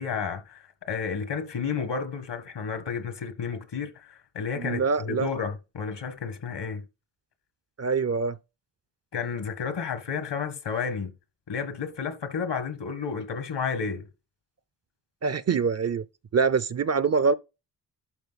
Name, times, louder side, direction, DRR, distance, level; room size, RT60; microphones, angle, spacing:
voice 1, 0.0-6.8 9.1-11.1 11.5-14.1, left 6 dB, 75° left, 1.6 m, -31 dB
voice 2, 4.6-5.3 7.8-8.4 15.2-16.0 16.3-17.3, right 5 dB, 40° right, 0.5 m, -24 dB
12.0 x 4.5 x 4.1 m
cardioid pair, 65°, 42 cm